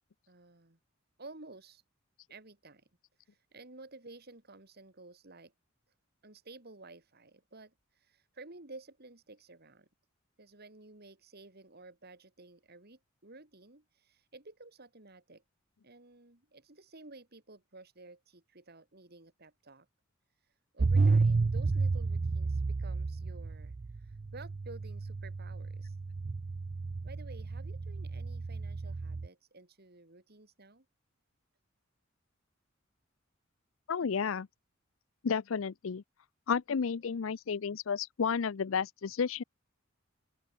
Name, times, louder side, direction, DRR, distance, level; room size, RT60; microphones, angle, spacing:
voice 1, 0.3-0.8 1.2-1.8 2.3-2.8 3.2-5.5 6.2-9.9 10.4-15.4 15.8-19.9 20.4-26.0 27.0-30.8, right 2 dB, 50° right, 2.9 m, -53 dB
sound 1, 20.8-29.3, right 3 dB, 35° right, 0.4 m, -31 dB
voice 2, 33.9-34.5 35.2-36.0 36.5-39.4, left 6 dB, 80° left, 0.5 m, -32 dB
open air
head